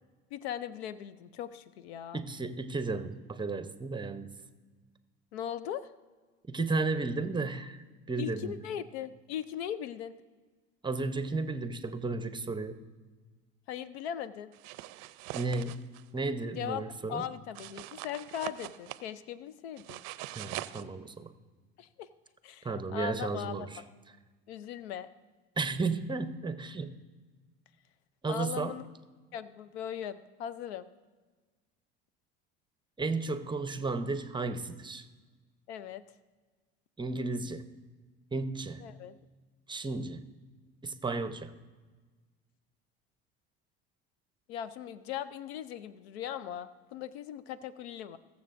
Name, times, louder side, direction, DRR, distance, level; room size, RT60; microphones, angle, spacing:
voice 1, 0.3-2.2 5.3-5.9 8.2-10.1 13.7-14.5 16.6-20.0 21.8-22.1 22.4-23.8 24.5-25.1 28.3-28.8 29.3-30.9 35.7-36.0 38.8-39.2 44.5-48.2, left 10 dB, 85° left, 16 dB, 0.6 m, -39 dB
voice 2, 2.1-4.3 6.5-8.5 10.8-12.8 15.3-15.8 16.1-17.2 20.4-21.3 22.6-23.8 25.6-27.0 28.2-28.8 33.0-35.0 37.0-37.6 38.3-38.8 39.7-40.2 40.8-41.5, right 3 dB, 15° right, 10 dB, 0.7 m, -33 dB
sound 1, 14.5-16.0 17.6-19.1 19.8-20.8, right 17 dB, 60° right, 0.5 m, -42 dB
21.0 x 7.1 x 2.6 m, 1.3 s
hypercardioid pair, 80°, 31 cm